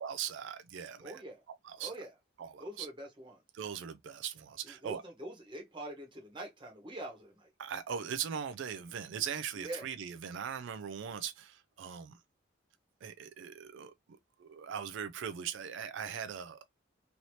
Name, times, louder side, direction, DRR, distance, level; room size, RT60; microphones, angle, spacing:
voice 1, 0.0-1.2 1.6-1.9 2.4-2.9 3.5-5.0 7.6-12.2 13.0-13.9 14.4-16.6, right 8 dB, 70° right, 0.3 m, -40 dB
voice 2, 1.0-1.4 1.8-2.1 2.6-3.4 4.6-7.5 9.6-9.8, right 1 dB, 25° right, 1.0 m, -44 dB
3.1 x 2.7 x 2.7 m
head